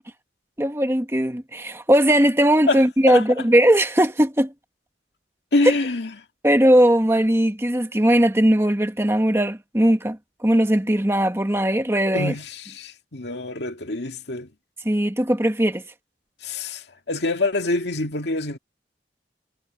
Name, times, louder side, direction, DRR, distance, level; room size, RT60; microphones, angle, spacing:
voice 1, 0.6-4.5 6.4-12.3 14.8-15.8, equal, 15° right, 1.3 m, -19 dB
voice 2, 2.7-3.2 5.5-6.1 12.1-14.5 16.4-18.6, left 2 dB, 75° left, 2.1 m, -25 dB
head